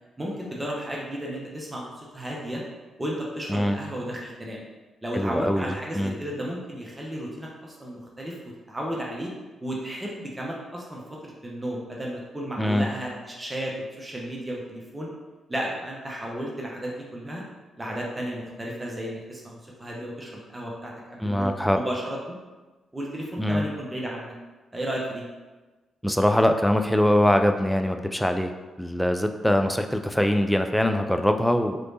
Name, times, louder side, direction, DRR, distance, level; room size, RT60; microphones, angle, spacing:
voice 1, 0.2-2.6 3.0-4.6 5.0-8.4 8.7-9.3 9.6-15.1 15.5-17.4 17.8-22.4 22.9-24.3 24.7-25.2, equal, 20° right, -3 dB, 0.7 m, -33 dB
voice 2, 5.1-5.7 5.9-6.1 12.6-12.9 21.2-21.8 23.4-23.6 26.0-28.5 28.8-31.8, left 1 dB, 5° left, 6 dB, 0.3 m, -22 dB
3.1 x 3.0 x 2.6 m, 1.2 s
hypercardioid pair, 40°, 0 cm